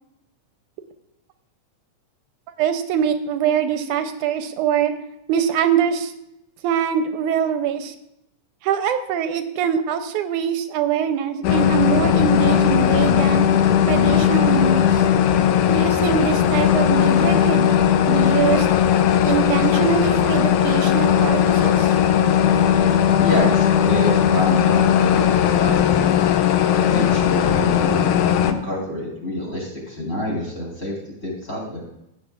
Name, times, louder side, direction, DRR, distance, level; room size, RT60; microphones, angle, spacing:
voice 1, 2.6-4.9 5.3-6.1 6.6-7.9 8.6-13.5 13.9-15.0 15.7-17.7 18.1-18.7 19.3-21.9, right 8 dB, 85° right, 8 dB, 2.0 m, -23 dB
sound 1, 11.4-28.5, left 9 dB, 85° left, 2.2 m, -17 dB
voice 2, 23.2-26.2 26.9-30.9 31.2-31.8, left 1 dB, 20° left, -3 dB, 4.2 m, -27 dB
16.0 x 9.4 x 2.4 m, 0.84 s
omnidirectional pair, 3.6 m